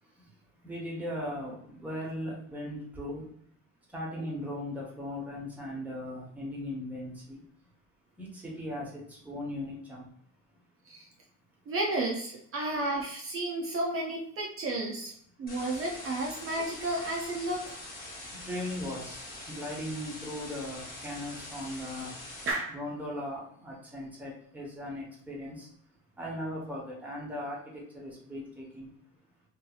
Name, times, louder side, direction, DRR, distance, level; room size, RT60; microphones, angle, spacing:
voice 1, 0.0-3.3 3.9-7.7 8.1-10.1 10.5-10.7 15.4-15.5 18.2-22.2 22.7-25.7 26.2-29.1, left 1 dB, 5° right, -4 dB, 0.8 m, -38 dB
voice 2, 11.7-15.1 15.4-17.7 22.5-22.7, right 2 dB, 45° right, -1 dB, 0.6 m, -32 dB
sound 1, 15.5-22.5, left 2 dB, 30° left, 0.9 m, -44 dB
2.7 x 2.6 x 2.3 m, 0.65 s
cardioid pair, 130°, 30 cm